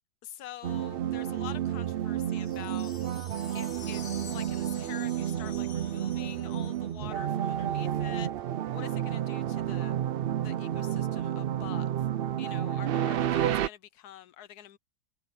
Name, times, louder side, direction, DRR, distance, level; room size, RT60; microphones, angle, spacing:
voice 1, 0.2-2.9 3.5-9.9 10.4-12.1 12.4-14.8, left 12 dB, 90° left, 1.3 m, -46 dB
sound 1, 0.6-13.7, right 11 dB, 80° right, 0.5 m, -31 dB
sound 2, 2.3-7.0, left 6 dB, 45° left, 1.5 m, -49 dB
omnidirectional pair, 1.6 m